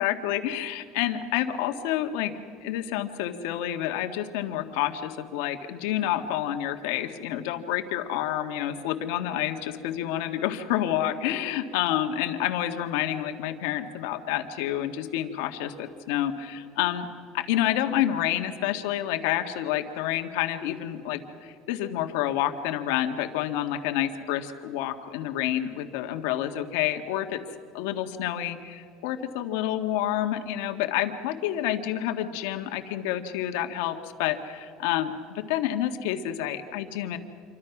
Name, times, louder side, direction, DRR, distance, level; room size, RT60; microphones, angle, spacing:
voice 1, 0.0-2.3 2.6-17.1 17.3-27.4 27.7-37.2, left 12 dB, 65° left, 6 dB, 1.8 m, -29 dB
27.5 x 24.0 x 6.1 m, 2.4 s
cardioid pair, 180°, 0 cm